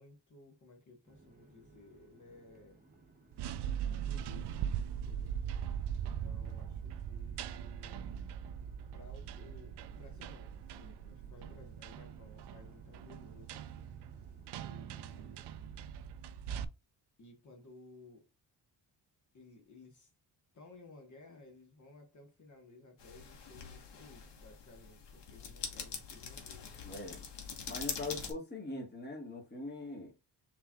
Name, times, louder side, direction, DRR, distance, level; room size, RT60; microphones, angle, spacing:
voice 1, 0.0-2.8 3.9-4.6 5.0-5.3 6.0-8.3 8.9-13.6 14.6-15.5 17.2-18.3 19.3-20.1 20.5-27.3, left 2 dB, 45° left, 1.4 m, -57 dB
sound 1, 1.0-15.8, right 3 dB, 20° right, 0.9 m, -62 dB
sound 2, 3.3-16.6, right 9 dB, 70° right, 0.5 m, -41 dB
sound 3, 23.0-28.3, left 6 dB, 80° left, 1.3 m, -44 dB
voice 2, 26.8-27.2 27.7-30.1, left 2 dB, 25° left, 1.4 m, -42 dB
6.5 x 3.1 x 2.3 m
wide cardioid pair, 140°, 42 cm